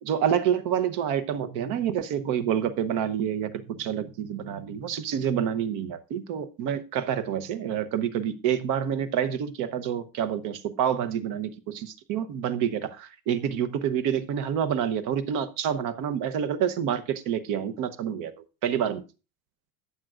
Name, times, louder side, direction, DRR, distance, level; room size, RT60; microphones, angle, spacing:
voice 1, 0.0-18.3 18.6-19.0, right 9 dB, 50° right, 0.9 m, -28 dB
14.0 x 9.1 x 2.5 m
cardioid pair, 150°, 42 cm